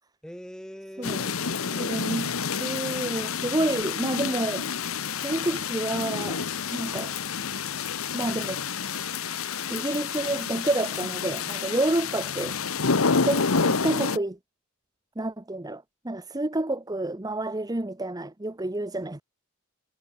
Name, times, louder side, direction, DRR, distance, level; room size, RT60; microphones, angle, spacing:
voice 1, 0.2-2.0, equal, 5° left, 2.3 m, -43 dB
sound 1, 1.0-14.2, left 5 dB, 75° left, 1.1 m, -29 dB
voice 2, 1.8-2.3 2.6-4.7 5.2-6.4 6.7-7.1 8.1-8.6 9.7-12.6 13.2-14.4 15.2-19.2, right 2 dB, 20° right, 0.9 m, -29 dB
Water tap faucet, 5.2-12.9 13.2-14.3, right 11 dB, 55° right, 6.4 m, -54 dB
head